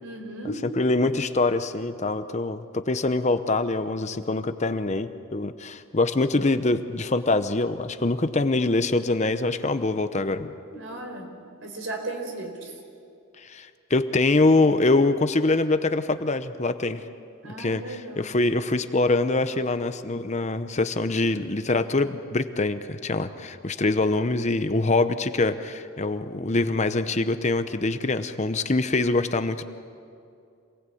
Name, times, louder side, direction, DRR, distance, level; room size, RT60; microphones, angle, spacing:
voice 1, 0.0-0.6 10.7-11.3 11.6-12.7 17.4-18.3, right 2 dB, 70° right, 3 dB, 4.5 m, -35 dB
voice 2, 0.8-10.5 13.4-17.0 17.6-29.6, left 2 dB, 35° left, 10 dB, 0.8 m, -24 dB
27.0 x 18.5 x 8.5 m, 2.4 s
head